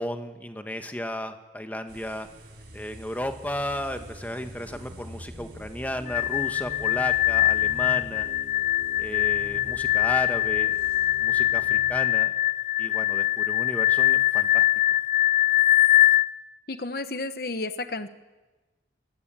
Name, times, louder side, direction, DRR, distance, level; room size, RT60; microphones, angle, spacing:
voice 1, 0.0-2.3 2.7-8.3 9.0-10.7 11.2-12.3 12.8-14.6, left 1 dB, 10° left, 6 dB, 1.5 m, -34 dB
sound 1, 1.9-12.0, equal, 80° right, 4.5 m, -44 dB
sound 2, 6.1-16.2, left 14 dB, 40° left, 0.8 m, -22 dB
voice 2, 16.7-18.1, left 2 dB, 55° left, 10 dB, 1.1 m, -32 dB
24.0 x 20.0 x 9.0 m, 1.2 s
head